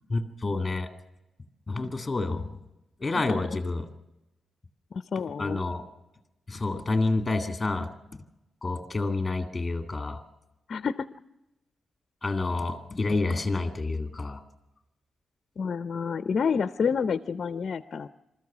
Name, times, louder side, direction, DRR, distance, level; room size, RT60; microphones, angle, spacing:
voice 1, 0.1-0.9 1.7-2.5 3.0-3.8 5.4-5.8 6.5-7.9 8.6-10.2 12.2-14.4, left 3 dB, 20° left, 6 dB, 2.0 m, -28 dB
voice 2, 4.9-5.6 10.7-11.1 15.6-18.1, left 6 dB, 50° left, 11 dB, 0.6 m, -29 dB
27.0 x 14.0 x 7.3 m, 0.97 s
cardioid pair, 120°, 0 cm